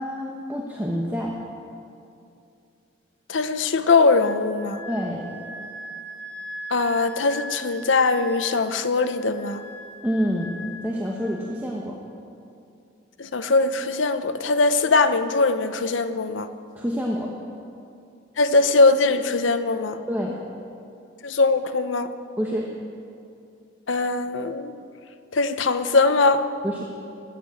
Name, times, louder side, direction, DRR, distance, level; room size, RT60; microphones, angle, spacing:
voice 1, 0.0-1.3 4.9-5.3 10.0-10.5 10.8-12.0 16.7-17.3 20.1-20.3 22.4-22.7 26.6-26.8, equal, 10° right, -2 dB, 1.1 m, -27 dB
voice 2, 3.3-4.8 6.7-9.6 13.2-16.5 18.4-20.0 21.2-22.1 23.9-24.7 25.3-26.5, left 3 dB, 85° left, 9 dB, 0.9 m, -21 dB
Wind instrument woodwind instrument, 4.0-11.5, equal, 10° left, 2.8 m, -40 dB
19.5 x 8.2 x 8.6 m, 2.6 s
head